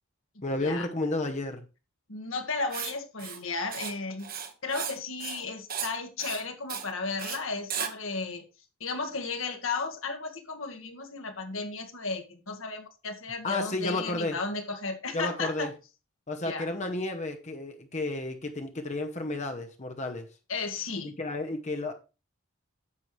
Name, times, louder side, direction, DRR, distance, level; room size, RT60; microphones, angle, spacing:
voice 1, 0.4-1.6 13.4-14.4 15.1-15.7 16.3-20.3 21.0-21.9, left 2 dB, 35° left, 0.9 m, -32 dB
voice 2, 2.1-4.3 4.6-8.4 8.8-15.7 16.4-16.7 20.5-21.1, left 4 dB, 65° left, 1.6 m, -34 dB
Writing, 2.7-2.9 3.2-3.4 3.7-3.9 4.2-5.0 5.2-5.4 5.7-5.9 6.2-6.4 6.7-6.9 7.2-7.4 7.7-7.9, right 8 dB, 45° right, 1.2 m, -35 dB
9.7 x 7.5 x 3.2 m
head